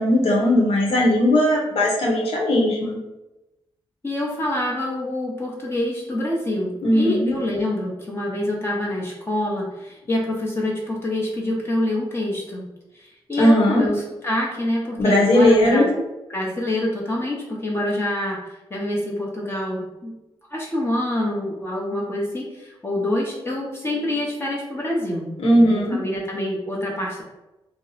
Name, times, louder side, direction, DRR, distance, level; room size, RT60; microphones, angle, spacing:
voice 1, 0.0-3.0 6.8-7.3 13.4-13.8 15.0-15.9 25.4-26.0, left 1 dB, 80° left, -3 dB, 0.8 m, -18 dB
voice 2, 4.0-12.6 12.9-15.9 16.3-20.1 20.5-27.2, left 1 dB, 25° left, -3 dB, 0.7 m, -26 dB
2.8 x 2.0 x 3.9 m, 0.98 s
cardioid pair, 90°, 10 cm